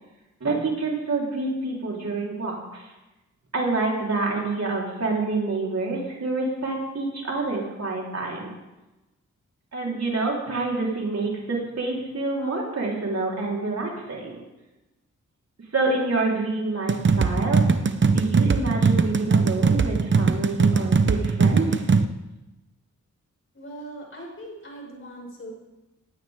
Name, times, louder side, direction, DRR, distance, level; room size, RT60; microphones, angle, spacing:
voice 1, 0.4-2.9 3.5-8.5 9.7-14.4 15.7-17.7 18.1-21.9, right 3 dB, 55° right, -3 dB, 4.2 m, -27 dB
sound 1, 16.9-22.0, right 4 dB, 40° right, 0.8 m, -20 dB
voice 2, 23.5-25.5, right 1 dB, 40° left, -1 dB, 5.8 m, -40 dB
19.0 x 16.0 x 3.7 m, 1.0 s
wide cardioid pair, 95°, 31 cm